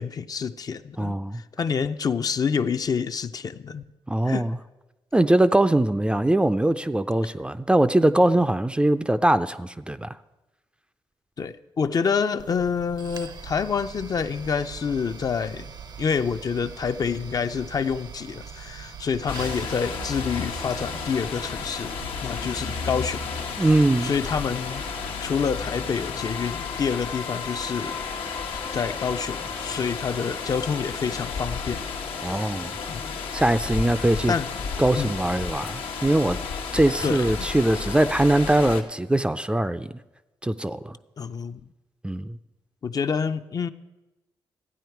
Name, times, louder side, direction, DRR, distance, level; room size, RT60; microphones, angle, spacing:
voice 1, 0.0-3.8 4.3-4.5 11.4-15.7 16.0-23.3 23.6-23.7 24.0-24.9 25.2-28.0 28.5-31.8 32.3-32.6 32.9-33.1 34.3-34.7 34.9-35.1 37.0-37.5 41.2-41.6 42.8-43.7, left 6 dB, 45° left, 10 dB, 0.5 m, -28 dB
voice 2, 1.0-1.4 4.1-4.6 5.1-10.1 23.6-24.1 32.2-32.7 33.3-34.3 34.8-36.4 36.7-39.9 40.4-41.0 42.0-42.4, right 1 dB, 10° right, 12 dB, 0.4 m, -22 dB
sound 1, 12.4-25.9, right 6 dB, 50° right, 0.6 m, -42 dB
sound 2, 19.3-38.8, left 5 dB, 90° left, 1.1 m, -33 dB
Wind instrument woodwind instrument, 26.2-30.4, left 6 dB, 65° left, 1.1 m, -40 dB
13.5 x 9.2 x 4.6 m, 1.1 s
cardioid pair, 80°, 9 cm